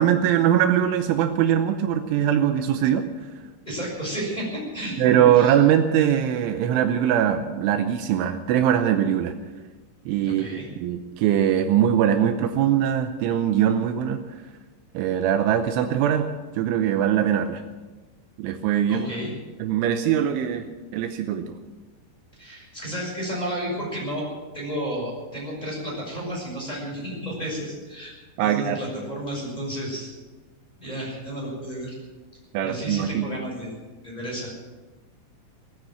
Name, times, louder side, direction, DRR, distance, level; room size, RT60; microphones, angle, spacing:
voice 1, 0.0-3.1 5.0-9.3 10.1-14.2 14.9-16.3 16.6-17.6 18.4-19.1 19.6-20.7 20.9-21.6 28.4-28.8 32.5-33.3, right 10 dB, 80° right, 8 dB, 3.2 m, -21 dB
voice 2, 3.6-5.5 10.2-10.7 18.9-19.3 22.4-24.2 24.5-28.1 28.4-30.1 30.8-32.0 32.6-33.7 34.0-34.5, right 1 dB, 10° left, -4 dB, 5.9 m, -32 dB
18.5 x 10.0 x 7.7 m, 1.2 s
omnidirectional pair, 5.6 m